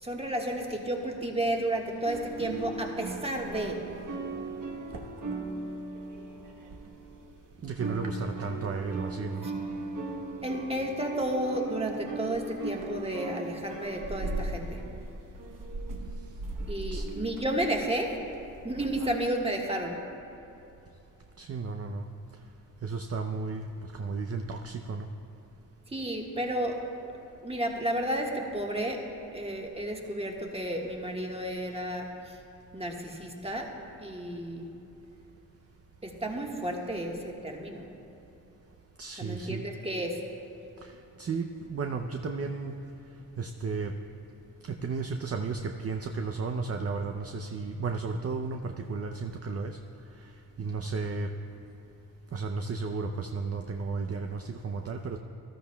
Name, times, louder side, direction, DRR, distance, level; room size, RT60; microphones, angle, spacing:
voice 1, 0.0-3.8 9.4-9.5 10.4-14.8 16.7-18.2 18.6-20.0 25.9-26.8 27.4-29.0 29.3-32.4 32.7-33.7 34.0-34.7 36.0-37.9 39.2-40.2, right 1 dB, 15° right, 1 dB, 1.5 m, -32 dB
sound 1, 2.1-7.4 7.6-19.1, right 2 dB, 55° right, 1.2 m, -38 dB
voice 2, 7.6-9.5 16.9-17.1 21.4-22.1 22.8-25.1 39.0-39.6 40.8-40.9 41.2-42.7 43.4-43.9 44.7-49.8 50.6-51.3 52.3-55.2, right 4 dB, 40° right, 5 dB, 0.6 m, -33 dB
14.0 x 12.0 x 2.3 m, 2.8 s
supercardioid pair, 50°, 38 cm